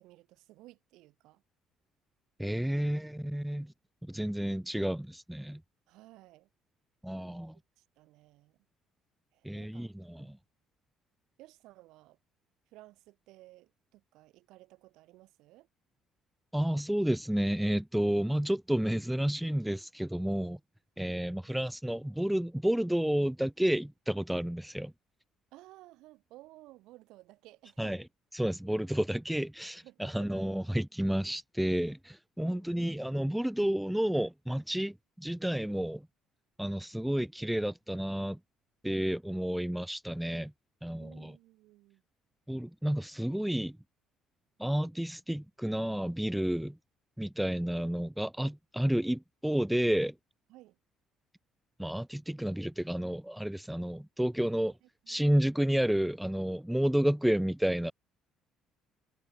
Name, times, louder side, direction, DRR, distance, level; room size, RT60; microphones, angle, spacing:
voice 1, 0.0-1.4 5.9-6.5 7.3-7.4 7.8-8.6 9.3-9.9 10.2-10.4 11.4-12.2 12.7-15.7 25.5-28.0 29.8-30.3 32.4-32.9 41.0-42.0 50.5-50.8 54.4-54.5 54.8-55.3, right 18 dB, 75° right, 3.7 m, -56 dB
voice 2, 2.4-3.7 4.0-5.6 7.0-7.6 9.4-10.4 16.5-20.6 21.0-24.9 27.8-28.0 28.3-36.1 36.6-38.4 38.8-40.5 40.8-41.3 42.5-43.8 44.6-46.8 47.2-50.1 51.8-54.7 55.1-57.9, equal, 5° right, 0.4 m, -31 dB
supercardioid pair, 70°, 0 cm